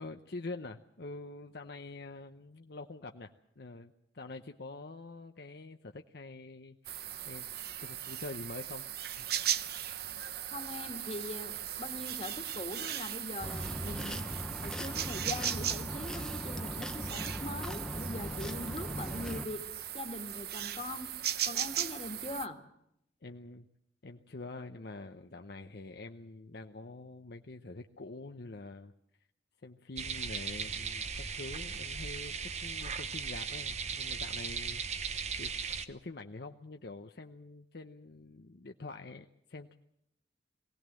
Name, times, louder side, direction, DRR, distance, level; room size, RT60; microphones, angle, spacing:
voice 1, 0.0-7.5 7.8-8.9 9.2-9.3 23.2-23.7 24.0-28.9 29.6-34.8 35.3-35.5 35.8-39.7, left 3 dB, 60° left, 5 dB, 0.8 m, -46 dB
sound 1, 6.8-22.5, right 11 dB, 60° right, 0.8 m, -38 dB
voice 2, 10.5-14.2 14.6-19.6 19.9-21.1 21.4-22.6, left 2 dB, 35° left, 5 dB, 1.9 m, -42 dB
sound 2, 13.4-19.4, equal, 5° left, 1.0 m, -39 dB
sound 3, 30.0-35.8, right 6 dB, 40° right, 1.0 m, -37 dB
22.0 x 17.5 x 7.6 m, 0.78 s
head